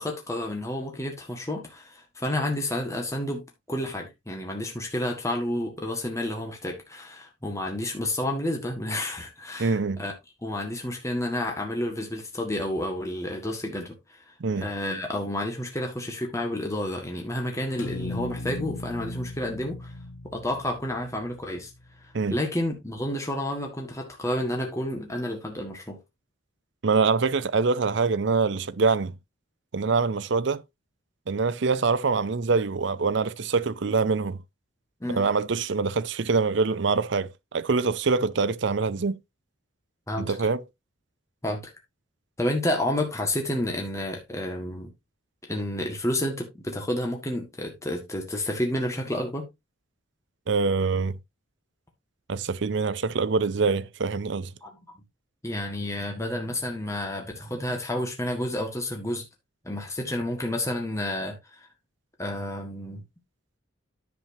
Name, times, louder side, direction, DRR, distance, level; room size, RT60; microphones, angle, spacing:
voice 1, 0.0-3.4 3.7-10.1 10.4-14.2 14.5-19.9 20.2-21.7 22.3-26.0 35.0-35.3 40.1-40.3 41.4-41.6 42.4-44.9 45.4-49.5 54.6-54.7 55.4-59.2 59.6-61.7 62.2-63.0, left 1 dB, 15° left, 1.7 m, -30 dB
voice 2, 9.6-10.0 14.4-14.7 22.1-22.4 26.8-29.1 29.7-30.6 31.3-34.4 35.1-39.2 40.2-40.6 50.5-51.2 52.3-54.5, right 4 dB, 55° right, 0.5 m, -24 dB
sound 1, 17.8-22.0, left 2 dB, 65° left, 0.7 m, -37 dB
10.0 x 7.2 x 2.8 m
head